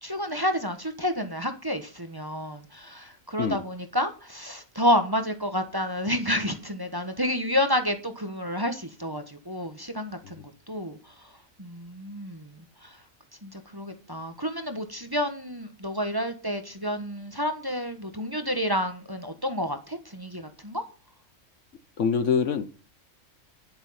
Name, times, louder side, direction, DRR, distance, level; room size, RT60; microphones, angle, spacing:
voice 1, 0.0-13.0 13.4-20.8, equal, 15° right, 1.2 m, -30 dB
voice 2, 22.0-22.7, left 6 dB, 60° left, 1.2 m, -24 dB
10.0 x 8.9 x 5.8 m
omnidirectional pair, 1.5 m